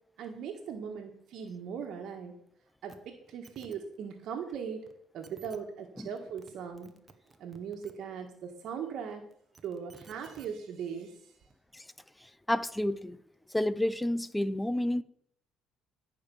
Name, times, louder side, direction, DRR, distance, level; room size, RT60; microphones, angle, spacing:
voice 1, 0.2-2.4 2.8-4.8 5.1-7.0 7.4-9.3 9.6-11.3, right 7 dB, 65° right, 1.6 m, -39 dB
sound 1, 2.9-3.0 3.3-3.8 4.9-5.0 5.2-5.6 6.2-6.5 6.8-7.9 9.3-10.5 11.5-11.6, right 4 dB, 25° right, 1.2 m, -55 dB
voice 2, 12.5-13.2 13.5-15.0, left 1 dB, 5° left, 0.5 m, -30 dB
14.5 x 5.3 x 7.1 m
cardioid pair, 115°, 0 cm